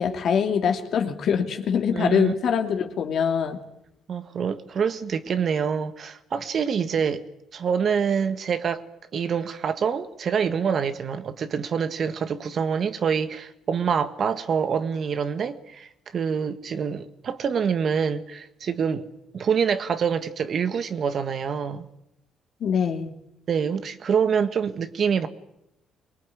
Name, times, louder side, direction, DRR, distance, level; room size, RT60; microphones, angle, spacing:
voice 1, 0.0-3.6 22.6-23.1, left 7 dB, 60° left, 2.6 m, -23 dB
voice 2, 1.9-2.3 4.1-7.2 7.5-8.8 9.1-19.1 19.3-21.8 23.5-25.3, right 6 dB, 55° right, 1.6 m, -26 dB
23.5 x 19.5 x 9.7 m
supercardioid pair, 80°, 0 cm